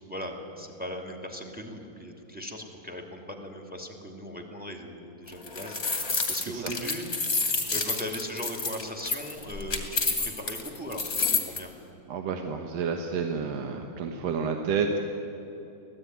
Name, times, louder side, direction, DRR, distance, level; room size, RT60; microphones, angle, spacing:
voice 1, 0.1-7.1 7.4-11.7, equal, 5° right, 3 dB, 2.2 m, -39 dB
sound 1, 5.3-11.6, left 4 dB, 20° left, 2.3 m, -29 dB
voice 2, 12.1-15.0, right 5 dB, 60° right, 4 dB, 2.1 m, -30 dB
25.0 x 17.5 x 9.5 m, 2.9 s
omnidirectional pair, 3.7 m